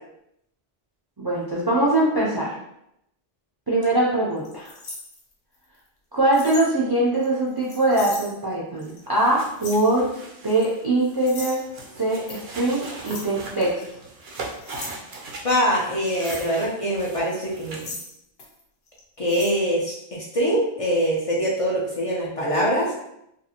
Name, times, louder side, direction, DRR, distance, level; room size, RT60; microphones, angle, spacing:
voice 1, 1.2-2.5 3.7-4.7 6.1-10.1 10.4-11.6 12.0-13.8, right 1 dB, 40° right, -5 dB, 0.3 m, -22 dB
sound 1, 4.4-5.6 6.3-6.7 7.1-8.3 8.8-9.0 9.5-9.9 10.5-10.7 11.2-11.6 12.3-12.4 13.0-13.3 13.7-13.8 14.3-14.9 16.1-16.5 17.3-18.6 18.9-19.0 19.3-19.5, left 3 dB, 75° left, 0.9 m, -38 dB
sound 2, 8.9-18.0, right 3 dB, 85° right, 0.9 m, -40 dB
voice 2, 15.4-17.9 19.2-22.9, equal, 45° left, -5 dB, 0.5 m, -23 dB
2.5 x 2.4 x 2.8 m, 0.80 s
omnidirectional pair, 1.0 m